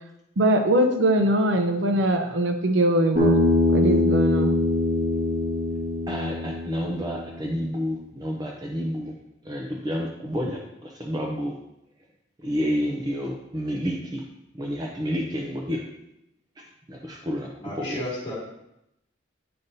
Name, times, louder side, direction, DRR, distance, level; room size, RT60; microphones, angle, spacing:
voice 1, 0.4-3.4 3.7-4.5, right 1 dB, 70° right, 6 dB, 0.7 m, -21 dB
Bass guitar, 3.2-7.5, left 2 dB, 40° right, 2.3 m, -23 dB
voice 2, 6.1-9.1 9.5-11.5 12.4-14.2 14.6-15.8 16.9-17.5 17.8-18.0, equal, 20° right, 0 dB, 0.6 m, -29 dB
voice 3, 17.6-18.4, left 1 dB, 30° left, -6 dB, 2.3 m, -33 dB
8.7 x 5.2 x 2.7 m, 0.84 s
head